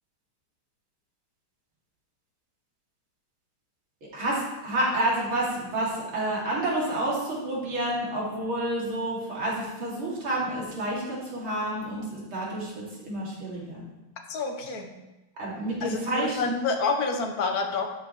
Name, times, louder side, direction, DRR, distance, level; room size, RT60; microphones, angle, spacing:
voice 1, 4.1-13.8 15.4-16.5, right 1 dB, 85° right, -5 dB, 3.5 m, -29 dB
voice 2, 14.3-14.9 15.8-17.9, left 4 dB, 50° left, 4 dB, 1.6 m, -28 dB
12.5 x 7.6 x 3.2 m, 1.0 s
omnidirectional pair, 2.2 m